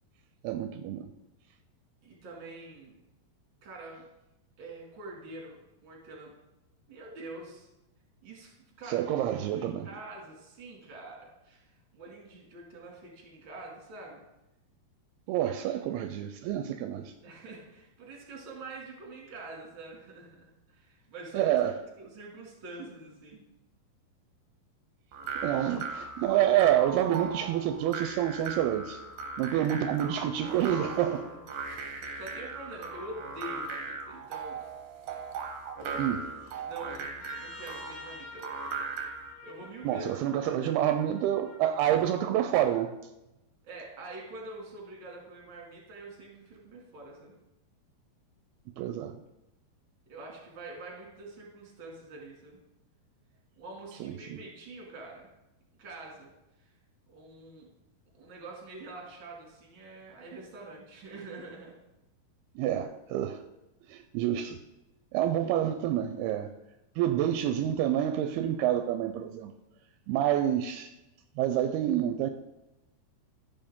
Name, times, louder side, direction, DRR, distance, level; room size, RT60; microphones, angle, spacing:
voice 1, 0.4-1.1 8.9-9.9 15.3-17.1 21.3-21.8 25.4-29.0 29.4-31.2 36.0-36.3 39.8-42.9 48.8-49.2 54.0-54.4 62.6-63.4 63.9-64.6 65.1-66.5 67.0-69.5 70.1-70.9 71.4-72.3, right 11 dB, 85° right, 8 dB, 2.5 m, -28 dB
voice 2, 2.0-2.9 3.6-4.0 4.6-6.3 6.9-7.7 8.2-9.0 9.5-14.2 17.2-21.5 22.0-23.4 31.1-31.4 31.8-34.6 36.6-38.5 39.4-40.6 43.6-47.3 50.1-52.6 53.6-55.3 55.8-56.3 56.6-56.7 57.1-57.7 58.1-61.8, right 2 dB, 35° right, -1 dB, 2.6 m, -45 dB
sound 1, 25.1-39.3, right 4 dB, 65° right, 2.2 m, -39 dB
Trumpet, 37.2-41.7, left 3 dB, 75° left, 1.4 m, -48 dB
14.0 x 7.1 x 3.6 m, 0.93 s
omnidirectional pair, 4.6 m